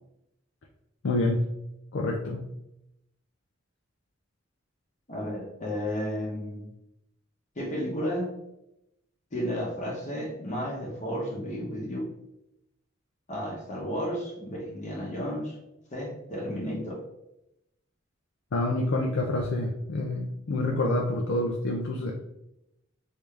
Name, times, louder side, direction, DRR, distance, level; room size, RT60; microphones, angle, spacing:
voice 1, 1.0-1.5 1.9-2.5 18.5-22.1, left 2 dB, 65° left, 0 dB, 0.5 m, -27 dB
voice 2, 5.1-6.7 7.6-8.3 9.3-12.1 13.3-15.6 15.9-17.0, equal, 40° left, -2 dB, 0.9 m, -32 dB
3.5 x 2.7 x 3.2 m, 0.85 s
head